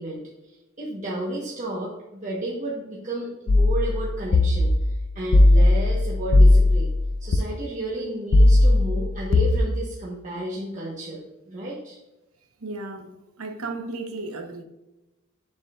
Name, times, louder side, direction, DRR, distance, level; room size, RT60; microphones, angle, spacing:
voice 1, 0.0-6.9 7.2-12.0, right 1 dB, 35° right, -5 dB, 1.2 m, -32 dB
sound 1, 3.5-7.4 8.3-9.6, left 2 dB, 65° left, 0.5 m, -18 dB
voice 2, 12.6-13.1 13.4-14.6, right 3 dB, 80° right, 5 dB, 1.0 m, -34 dB
7.2 x 6.7 x 2.5 m, 0.99 s
head